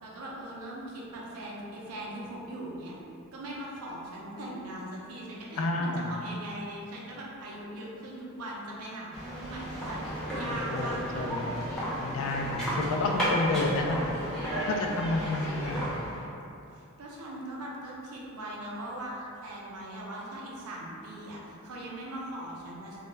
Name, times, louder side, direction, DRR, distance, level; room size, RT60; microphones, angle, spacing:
voice 1, 0.0-2.9 3.3-11.0 14.5-16.1 16.7-23.0, right 1 dB, 90° right, -4 dB, 0.5 m, -40 dB
voice 2, 5.6-6.1 10.5-10.9 11.2-11.5 12.0-14.1 14.5-15.9, left 2 dB, 65° left, 2 dB, 0.3 m, -30 dB
sound 1, 9.1-16.3, equal, 5° left, 0.5 m, -33 dB
2.2 x 2.0 x 3.1 m, 2.6 s
head